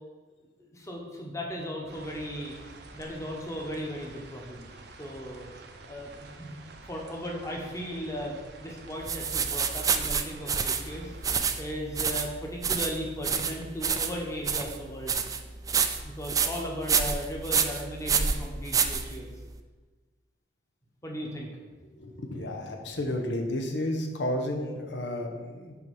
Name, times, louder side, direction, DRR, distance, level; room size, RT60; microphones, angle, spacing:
voice 1, 0.6-2.5 2.9-4.7 5.0-5.5 5.9-6.5 6.8-11.1 11.6-15.2 16.0-19.3 21.0-21.5, equal, 20° left, -1 dB, 1.1 m, -36 dB
sound 1, 1.9-11.4, right 3 dB, 65° right, 0.7 m, -49 dB
sound 2, 9.1-19.5, right 6 dB, 20° right, 0.3 m, -28 dB
voice 2, 21.9-25.8, left 1 dB, 90° left, 3 dB, 1.0 m, -32 dB
6.0 x 4.7 x 5.4 m, 1.3 s
head